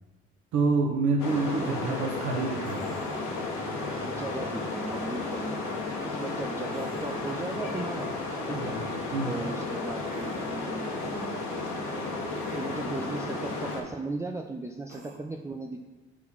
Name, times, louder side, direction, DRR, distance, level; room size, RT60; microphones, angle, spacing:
voice 1, 0.5-3.0 8.5-8.8 9.1-9.5, right 3 dB, 65° right, 0 dB, 1.2 m, -28 dB
sound 1, 1.2-13.8, left 3 dB, 70° left, 1.2 m, -33 dB
voice 2, 1.6-2.2 4.0-5.6 6.0-8.1 8.4-8.8 9.3-11.4 11.7-12.2 12.6-15.8, right 2 dB, 10° right, 2 dB, 0.5 m, -37 dB
sound 2, 2.6-3.4 6.7-7.5 10.1-10.5 12.3-13.0 14.9-15.2, right 3 dB, 85° right, 1.2 m, -46 dB
6.2 x 3.6 x 6.1 m, 1.3 s
hypercardioid pair, 50°, 30 cm